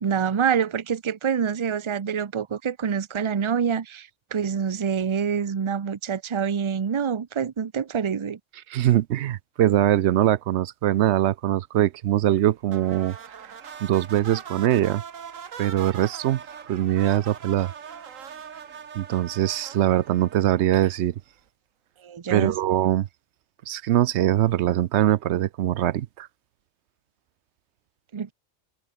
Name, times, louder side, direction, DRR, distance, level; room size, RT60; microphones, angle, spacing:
voice 1, 0.0-8.4 22.0-22.5 28.1-28.3, right 7 dB, 35° right, 0.5 m, -26 dB
voice 2, 8.7-13.2 13.8-15.0 15.6-16.4 16.7-17.7 18.9-21.1 22.3-23.1 23.7-26.3, right 12 dB, 65° right, 0.8 m, -22 dB
sound 1, 12.7-21.1, right 7 dB, 85° right, 1.7 m, -41 dB
omnidirectional pair, 1.3 m